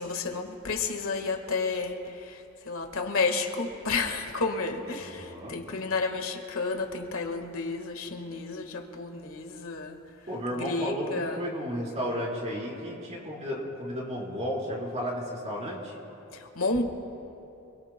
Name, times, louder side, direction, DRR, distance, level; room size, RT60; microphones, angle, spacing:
voice 1, 0.0-10.0 10.5-11.4 16.3-16.8, left 3 dB, 90° left, 4 dB, 1.6 m, -31 dB
voice 2, 5.0-5.6 10.3-15.9, equal, 35° right, -4 dB, 4.0 m, -33 dB
28.5 x 22.0 x 2.2 m, 3.0 s
head